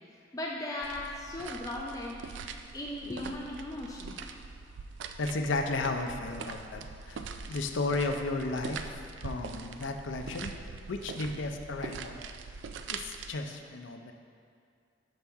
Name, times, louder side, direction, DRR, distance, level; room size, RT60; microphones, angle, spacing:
voice 1, 0.3-2.2 2.7-4.4, left 1 dB, 20° left, -2 dB, 0.4 m, -37 dB
sound 1, 0.8-13.3, right 5 dB, 70° right, 0.3 m, -43 dB
voice 2, 5.2-10.5 10.9-12.3 12.9-14.1, left 3 dB, 90° left, 5 dB, 0.5 m, -34 dB
7.0 x 5.7 x 3.5 m, 2.3 s
head